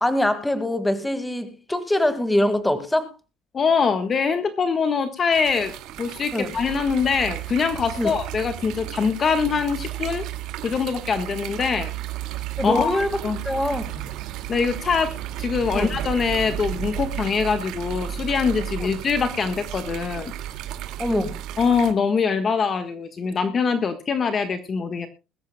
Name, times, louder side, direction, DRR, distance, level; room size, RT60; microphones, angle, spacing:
voice 1, 0.0-3.1 6.3-6.5 8.0-8.1 12.6-13.2 13.4-14.1 15.7-16.0 21.0-21.4, left 1 dB, 5° left, 1.9 m, -23 dB
voice 2, 3.5-10.2 10.6-11.9 12.6-13.4 14.5-15.1 15.4-20.3 21.6-25.1, left 5 dB, 25° left, 1.4 m, -23 dB
sound 1, 5.3-21.9, right 11 dB, 60° right, 2.0 m, -33 dB
21.5 x 14.0 x 2.2 m
cardioid pair, 160°, 0 cm